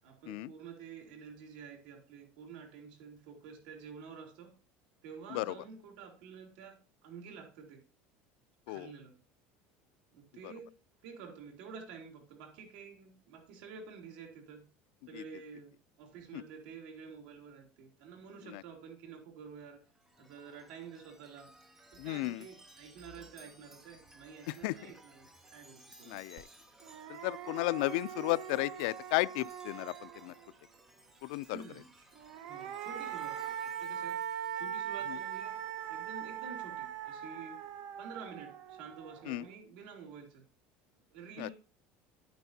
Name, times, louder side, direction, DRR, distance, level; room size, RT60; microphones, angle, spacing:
voice 1, 0.0-4.5 5.0-7.8 8.7-9.2 10.1-10.7 11.0-14.6 15.1-19.8 20.2-21.5 21.9-26.2 31.5-32.0 32.5-34.3 34.6-35.6 35.9-37.6 38.0-40.4 41.1-41.5, right 6 dB, 70° right, 3.4 m, -49 dB
Chime, 19.9-35.8, right 1 dB, 10° right, 0.9 m, -60 dB
voice 2, 22.0-22.4 24.5-24.8 26.1-26.4 27.1-30.3 31.2-31.6 39.3-39.4 41.4-41.5, left 21 dB, 70° left, 0.4 m, -34 dB
sound 1, 26.4-26.5 26.8-30.5 32.1-39.4, right 9 dB, 50° right, 1.1 m, -41 dB
10.0 x 9.4 x 2.7 m
cardioid pair, 180°, 5 cm